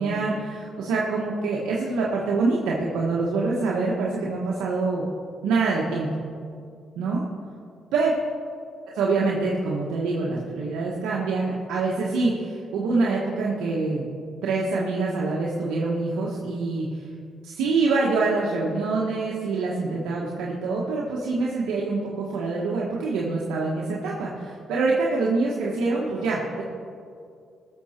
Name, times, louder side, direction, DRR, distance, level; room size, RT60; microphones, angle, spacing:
voice 1, 0.0-5.1 5.4-6.1 7.0-7.2 7.9-8.1 8.8-14.0 14.4-17.1 17.4-26.6, right 3 dB, 90° right, -4 dB, 1.4 m, -25 dB
19.0 x 6.9 x 4.4 m, 2.4 s
cardioid pair, 90°, 0 cm